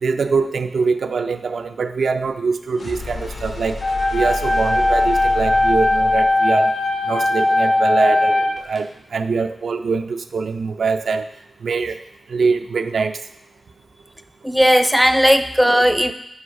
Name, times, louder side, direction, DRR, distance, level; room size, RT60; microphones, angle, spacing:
voice 1, 0.0-3.8 4.1-6.7 7.1-11.3 11.6-12.0 12.3-13.2, right 4 dB, 70° right, 8 dB, 0.4 m, -23 dB
sound 1, 2.7-8.5, left 2 dB, 85° left, 1.6 m, -32 dB
sound 2, 3.8-8.8, left 2 dB, 55° left, 1.3 m, -18 dB
voice 2, 14.4-16.1, equal, 5° right, 8 dB, 0.3 m, -15 dB
9.5 x 3.3 x 5.3 m, 0.81 s
wide cardioid pair, 170°, 0 cm